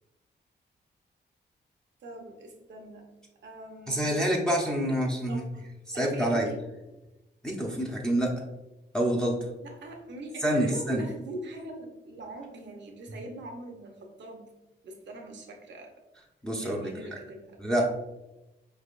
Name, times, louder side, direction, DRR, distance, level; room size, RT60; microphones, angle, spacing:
voice 1, 2.0-3.1 3.4-4.1 4.8-5.0 5.3-5.7 5.9-6.7 9.6-14.5 14.8-15.9 16.6-17.9, right 1 dB, 85° right, 2 dB, 0.8 m, -42 dB
voice 2, 3.9-5.4 5.9-6.5 7.4-8.3 8.9-9.5 10.4-11.0 16.4-17.2 17.6-17.9, right 1 dB, 5° left, -3 dB, 0.7 m, -27 dB
4.7 x 3.3 x 2.5 m, 0.97 s
cardioid pair, 95°, 18 cm